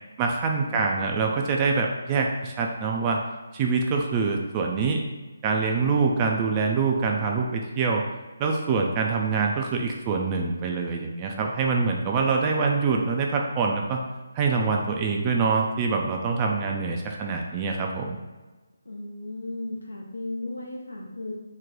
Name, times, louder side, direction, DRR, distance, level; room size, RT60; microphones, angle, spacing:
voice 1, 0.2-3.2 3.5-5.0 5.4-8.0 8.4-14.0 14.3-18.2, right 4 dB, 25° right, 1 dB, 0.3 m, -25 dB
voice 2, 18.8-21.3, left 2 dB, 75° left, -2 dB, 0.5 m, -35 dB
3.0 x 2.1 x 3.9 m, 1.2 s
figure-of-eight pair, 145°, 0 cm